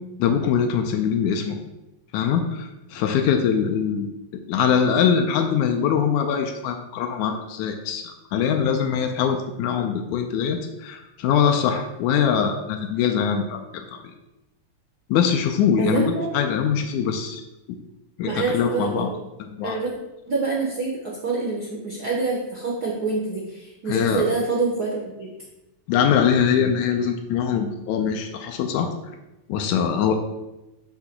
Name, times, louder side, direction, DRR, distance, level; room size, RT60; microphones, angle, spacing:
voice 1, 0.2-1.6 2.1-4.1 4.3-8.0 8.3-14.0 15.1-17.4 18.2-19.1 19.5-19.8 23.9-24.2 25.9-28.9 29.5-30.2, left 7 dB, 85° left, 4 dB, 2.0 m, -22 dB
voice 2, 15.8-16.3 18.2-19.2 19.6-19.9 20.3-25.3, right 3 dB, 85° right, -3 dB, 0.8 m, -26 dB
8.1 x 2.9 x 5.8 m, 0.97 s
omnidirectional pair, 3.3 m